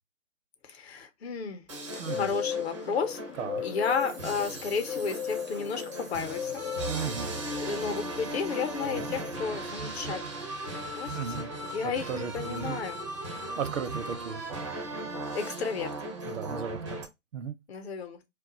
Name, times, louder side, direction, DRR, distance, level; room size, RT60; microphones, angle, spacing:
voice 1, 0.6-1.6 1.9-3.2 3.6-6.6 7.6-13.0 15.3-15.9 17.7-18.2, left 5 dB, 55° left, 0.8 m, -33 dB
sound 1, 1.7-17.0, right 2 dB, 25° right, 0.4 m, -37 dB
Bird, 1.9-10.2, left 8 dB, 85° left, 0.6 m, -38 dB
voice 2, 2.0-2.3 3.4-3.6 6.9-7.3 8.8-9.1 11.1-11.5 11.8-12.8 13.6-14.4 16.3-17.0 17.3-17.5, right 6 dB, 75° right, 0.7 m, -35 dB
2.3 x 2.2 x 3.8 m
hypercardioid pair, 140°, 38 cm